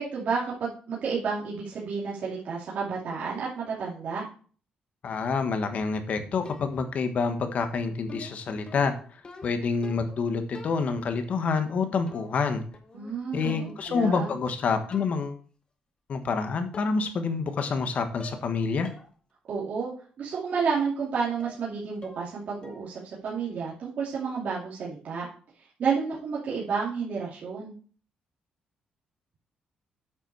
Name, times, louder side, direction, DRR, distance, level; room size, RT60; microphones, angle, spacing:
voice 1, 0.0-4.2 12.9-14.3 19.5-19.9 20.2-25.3 25.8-27.7, right 5 dB, 65° right, -6 dB, 2.5 m, -31 dB
voice 2, 5.0-8.9 9.4-12.6 13.3-15.4 16.1-18.9, left 5 dB, 55° left, 7 dB, 1.4 m, -27 dB
sound 1, 6.5-7.0 8.1-10.2 10.5-11.2 12.1-12.5 12.7-14.5 14.9-15.3 16.2-16.3 16.7-17.2 17.5-17.9 18.2-18.5 18.8-19.1 19.5-19.6 20.8-21.0 21.4-21.7 22.0-22.3 22.6-23.0 23.3-23.6, left 3 dB, 35° left, 1.4 m, -47 dB
8.9 x 5.7 x 4.7 m, 0.42 s
cardioid pair, 95°, 3 cm